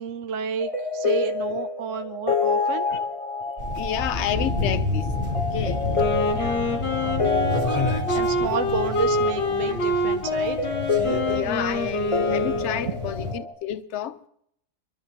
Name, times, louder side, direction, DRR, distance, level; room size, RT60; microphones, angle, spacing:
voice 1, 0.0-2.9 6.3-7.6 8.1-10.6, right 6 dB, 60° right, 0.9 m, -31 dB
sound 1, 0.6-13.5, left 4 dB, 25° left, 0.9 m, -28 dB
sound 2, 3.6-13.3, left 2 dB, 30° right, 1.8 m, -30 dB
voice 2, 3.7-6.7 11.3-14.2, left 10 dB, 50° left, 0.9 m, -31 dB
Wind instrument woodwind instrument, 5.9-13.0, left 1 dB, 90° left, 2.8 m, -27 dB
25.5 x 12.5 x 2.9 m
omnidirectional pair, 1.8 m